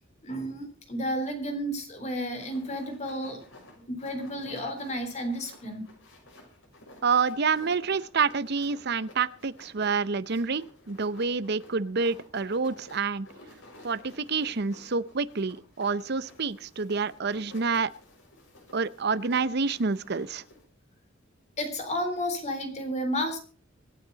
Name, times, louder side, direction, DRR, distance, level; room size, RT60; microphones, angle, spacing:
voice 1, 0.2-3.4 3.9-5.8 21.6-23.4, equal, 35° left, 6 dB, 3.8 m, -32 dB
sound 1, 2.4-20.6, left 1 dB, 75° left, 6.6 m, -53 dB
voice 2, 7.0-13.3 13.8-17.9 18.7-20.4, right 5 dB, 55° right, 15 dB, 0.7 m, -28 dB
26.0 x 9.1 x 4.0 m, 0.37 s
head